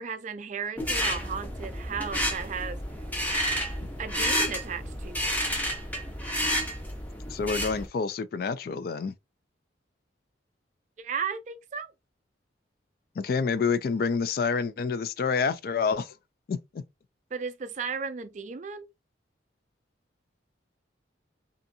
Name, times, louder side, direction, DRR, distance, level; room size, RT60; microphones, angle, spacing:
voice 1, 0.0-2.8 4.0-5.3 11.0-11.9 17.3-18.9, right 6 dB, 40° right, 0.3 m, -35 dB
sound 1, 0.8-7.9, equal, 10° left, 0.6 m, -30 dB
voice 2, 7.3-9.1 13.2-16.2 16.5-16.8, left 5 dB, 50° left, 0.3 m, -28 dB
2.7 x 2.4 x 2.6 m
head